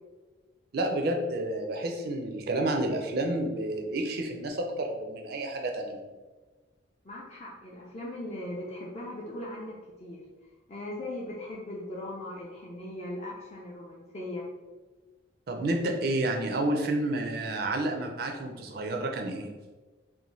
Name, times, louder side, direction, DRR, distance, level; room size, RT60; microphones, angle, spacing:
voice 1, 0.7-6.1 15.5-19.5, right 1 dB, 50° right, 3 dB, 0.4 m, -30 dB
voice 2, 7.0-10.3 10.7-14.5, left 1 dB, 30° left, -3 dB, 0.3 m, -39 dB
2.6 x 2.1 x 3.0 m, 1.3 s
head